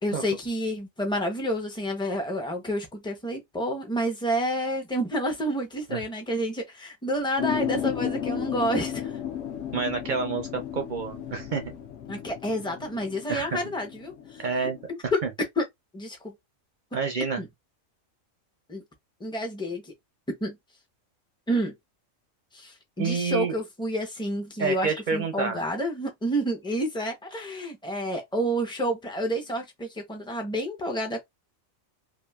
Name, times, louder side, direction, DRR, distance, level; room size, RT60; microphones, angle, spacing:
voice 1, 0.0-9.2 12.1-15.2 15.6-15.7 15.9-16.3 17.4-17.5 18.7-18.8 19.2-19.9 20.3-20.6 21.5-21.8 22.5-31.2, equal, 5° left, 0.3 m, -29 dB
sound 1, 7.4-14.9, left 10 dB, 70° left, 0.9 m, -34 dB
voice 2, 9.7-11.7 13.3-13.6 14.4-14.8 15.0-15.3 16.9-17.4 23.0-23.6 24.6-25.6, right 5 dB, 55° right, 0.5 m, -28 dB
3.0 x 2.4 x 2.3 m
omnidirectional pair, 1.4 m